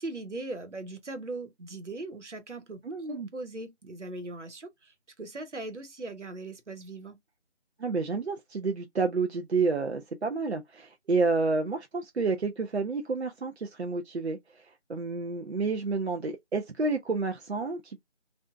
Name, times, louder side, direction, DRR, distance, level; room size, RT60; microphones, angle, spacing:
voice 1, 0.0-7.2, right 2 dB, 80° right, 1.3 m, -40 dB
voice 2, 2.8-3.3 7.8-18.0, right 4 dB, 65° right, 0.6 m, -30 dB
3.3 x 2.6 x 2.5 m
figure-of-eight pair, 180°, 35 cm